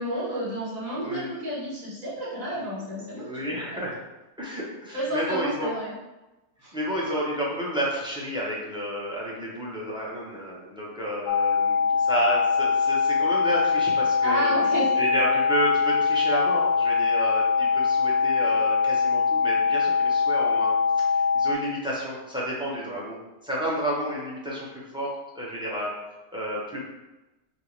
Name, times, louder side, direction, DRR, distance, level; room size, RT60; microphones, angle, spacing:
voice 1, 0.0-3.3 4.9-5.9 6.6-6.7 14.2-14.9, right 1 dB, 55° right, -9 dB, 1.8 m, -31 dB
voice 2, 1.0-1.3 2.5-2.6 3.1-4.0 4.4-5.7 6.7-14.5 15.0-24.7 24.9-25.9 26.3-26.8, right 1 dB, 5° right, -5 dB, 0.6 m, -31 dB
sound 1, 11.3-21.5, left 5 dB, 75° left, 1.1 m, -23 dB
6.1 x 2.1 x 3.2 m, 1.0 s
omnidirectional pair, 1.7 m